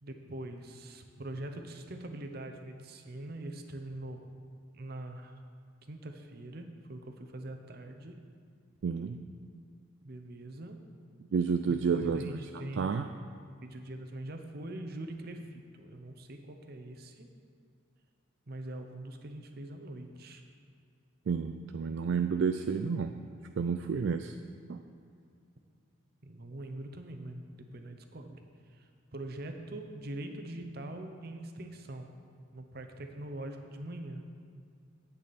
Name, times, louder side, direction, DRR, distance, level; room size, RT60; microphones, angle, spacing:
voice 1, 0.0-4.2 4.7-5.4 5.9-8.1 10.0-10.8 11.7-12.9 13.6-17.3 18.5-20.4 26.2-28.4 28.7-32.1 32.5-34.2, right 1 dB, 50° right, 5 dB, 0.8 m, -43 dB
voice 2, 8.8-9.2 11.3-12.4 12.8-13.1 21.3-23.1 23.6-24.3 24.7-24.8, right 5 dB, 65° right, 7 dB, 0.3 m, -30 dB
10.5 x 8.6 x 4.2 m, 2.2 s
head